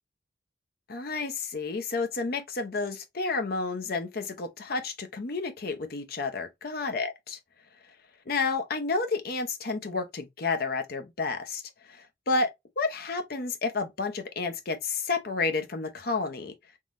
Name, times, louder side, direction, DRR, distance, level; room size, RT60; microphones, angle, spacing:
voice 1, 0.9-7.4 8.3-11.6 11.9-12.5 12.8-16.5, left 3 dB, 50° left, 0.6 m, -30 dB
3.7 x 3.0 x 2.5 m
head